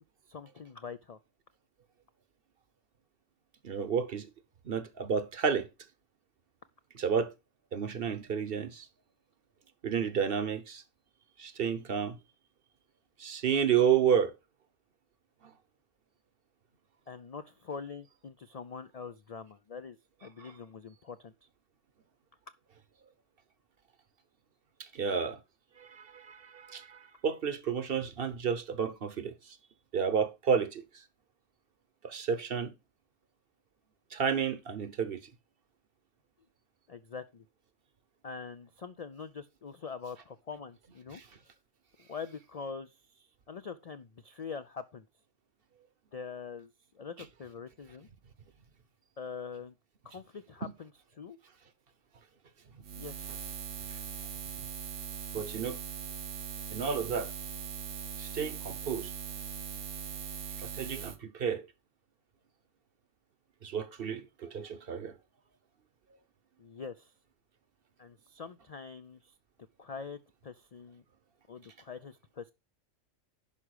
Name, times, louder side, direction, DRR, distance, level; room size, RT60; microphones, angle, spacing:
voice 1, 0.3-1.2 17.1-21.3 36.9-37.4 38.2-41.2 42.0-45.1 46.1-48.1 49.2-49.7 50.0-51.4 53.0-53.3 66.6-67.1 68.0-69.3 69.8-71.0 71.5-72.5, left 5 dB, 55° left, 0.4 m, -44 dB
voice 2, 3.6-4.3 4.6-5.7 6.9-7.3 7.7-8.9 9.8-10.8 11.4-12.2 13.2-14.3 20.4-20.5 24.8-25.4 25.8-29.6 29.9-30.8 32.0-32.7 34.1-35.2 41.1-41.2 50.6-50.7 55.3-55.8 56.7-57.3 58.2-59.1 60.6-61.6 63.6-65.1, right 7 dB, 50° right, 1.0 m, -31 dB
Buzz, 52.8-61.2, right 7 dB, 80° right, 1.3 m, -40 dB
11.0 x 4.9 x 4.8 m
omnidirectional pair, 1.3 m